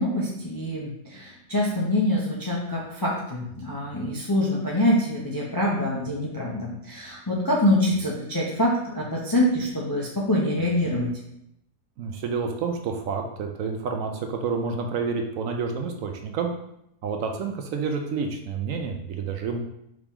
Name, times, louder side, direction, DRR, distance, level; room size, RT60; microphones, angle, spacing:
voice 1, 0.0-11.1, left 1 dB, 30° left, -4 dB, 0.4 m, -25 dB
voice 2, 12.0-16.5 17.0-19.6, right 5 dB, 70° right, 4 dB, 0.9 m, -29 dB
5.0 x 3.0 x 3.5 m, 0.78 s
omnidirectional pair, 1.6 m